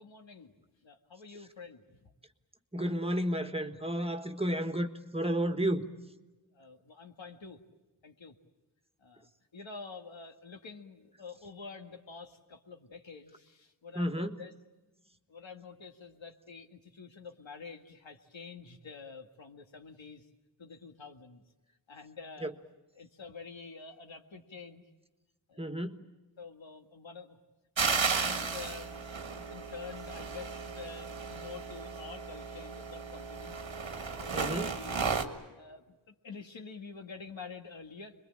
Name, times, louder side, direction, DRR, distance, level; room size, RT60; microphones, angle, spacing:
voice 1, 0.0-2.1 6.5-7.6 8.0-8.4 9.0-14.5 15.3-20.3 20.6-21.4 21.9-22.5 22.9-24.8 25.5-25.8 26.4-27.4 27.8-29.1 29.5-33.6 34.2-35.2 35.6-38.1, left 4 dB, 85° left, 1.8 m, -48 dB
voice 2, 2.7-5.9 13.9-14.4 22.4-22.5 25.6-26.1 34.3-34.7, equal, 15° right, 1.5 m, -32 dB
sound 1, 27.8-35.2, right 5 dB, 90° right, 1.8 m, -34 dB
26.5 x 22.0 x 8.8 m
wide cardioid pair, 80°, 45 cm